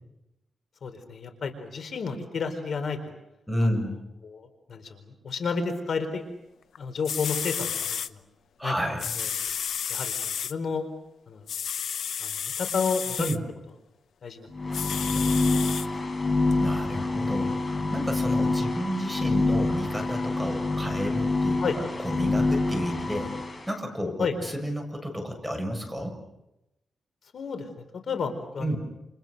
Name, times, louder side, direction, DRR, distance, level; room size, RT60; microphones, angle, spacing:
voice 1, 0.8-3.1 3.6-3.7 4.2-6.2 6.8-8.2 8.6-9.3 9.9-10.9 11.3-11.5 12.2-13.3 14.2-15.8 21.6-21.8 24.2-24.4 27.3-28.8, left 5 dB, 65° left, 7 dB, 4.2 m, -32 dB
voice 2, 3.5-4.0 8.6-9.1 13.2-13.4 16.6-23.3 23.7-26.2 28.6-28.8, equal, ahead, 4 dB, 7.0 m, -31 dB
sound 1, 6.7-6.8 7.0-8.1 9.0-10.5 11.5-13.4 14.7-15.9 16.5-16.6, left 8 dB, 85° left, 0.9 m, -31 dB
sound 2, 14.5-23.6, left 2 dB, 30° left, 5.5 m, -26 dB
30.0 x 30.0 x 6.7 m, 0.91 s
wide cardioid pair, 110°, 0 cm